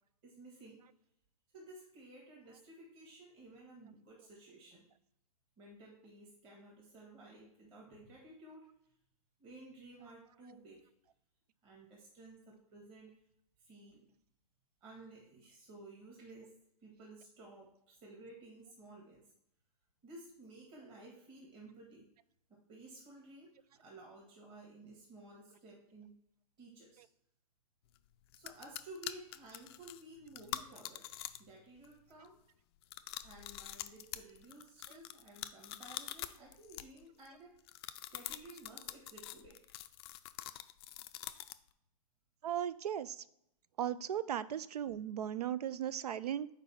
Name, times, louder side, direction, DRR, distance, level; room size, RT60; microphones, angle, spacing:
voice 1, 0.2-0.8 1.5-4.9 5.6-8.7 9.4-10.8 11.6-13.2 13.6-14.0 14.8-16.5 16.8-19.2 20.0-22.1 22.5-26.2 26.6-27.1 28.3-31.1 31.4-32.4 33.2-37.5 38.1-39.6, right 2 dB, 25° right, -3 dB, 1.6 m, -54 dB
sound 1, 28.0-28.1 28.3-31.6 31.8-32.3 32.8-37.3 37.7-41.7, left 13 dB, 40° left, 0.4 m, -45 dB
voice 2, 42.4-43.2 43.8-46.5, right 10 dB, 80° right, 17 dB, 0.4 m, -37 dB
4.6 x 4.0 x 5.6 m, 0.76 s
hypercardioid pair, 140°, 20 cm